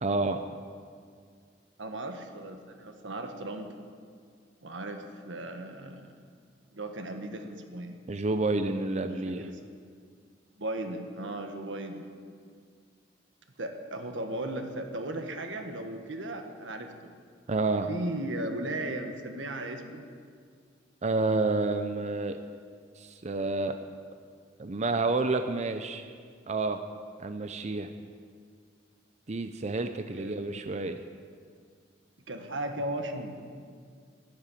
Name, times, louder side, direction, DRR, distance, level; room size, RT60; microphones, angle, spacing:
voice 1, 0.0-0.4 8.1-9.4 17.5-17.9 21.0-22.4 23.0-23.8 24.6-26.0 26.5-26.8 27.2-27.9 29.3-31.0, right 3 dB, 40° right, 8 dB, 0.6 m, -29 dB
voice 2, 1.8-3.7 4.6-6.1 6.7-7.9 9.2-9.6 10.6-12.0 13.6-17.1 17.9-20.0 30.2-30.6 32.3-33.5, right 1 dB, 90° right, 5 dB, 1.5 m, -36 dB
12.0 x 11.0 x 8.6 m, 2.1 s
head